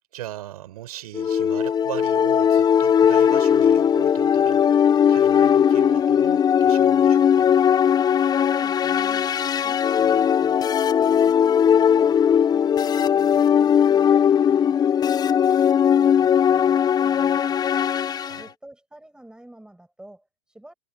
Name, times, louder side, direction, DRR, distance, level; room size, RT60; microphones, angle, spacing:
voice 1, 0.0-7.5 18.0-18.5, right 14 dB, 75° right, 7.3 m, -38 dB
sound 1, 1.1-18.4, left 8 dB, 20° left, 0.6 m, -19 dB
voice 2, 8.3-9.3 9.6-14.8 15.0-17.6 18.4-20.7, right 1 dB, 5° right, 6.8 m, -47 dB
hypercardioid pair, 110°, 20 cm